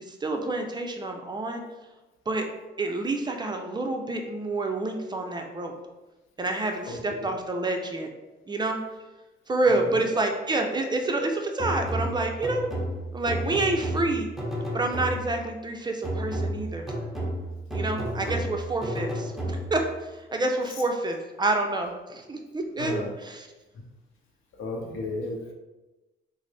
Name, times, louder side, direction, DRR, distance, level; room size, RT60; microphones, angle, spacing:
voice 1, 0.0-1.6 2.3-2.5 2.8-5.7 6.4-8.1 8.5-8.8 9.5-12.7 13.1-14.3 14.7-16.9 17.7-23.5, right 2 dB, 20° right, 3 dB, 0.4 m, -28 dB
voice 2, 6.8-7.3 9.7-10.0 18.2-18.4 22.8-23.1 23.7-23.8 24.6-25.5, left 2 dB, 85° left, 1 dB, 0.7 m, -34 dB
sound 1, 11.6-15.5 16.0-19.9, right 1 dB, ahead, 0.8 m, -32 dB
3.8 x 2.0 x 3.2 m, 1.1 s
cardioid pair, 90°, 20 cm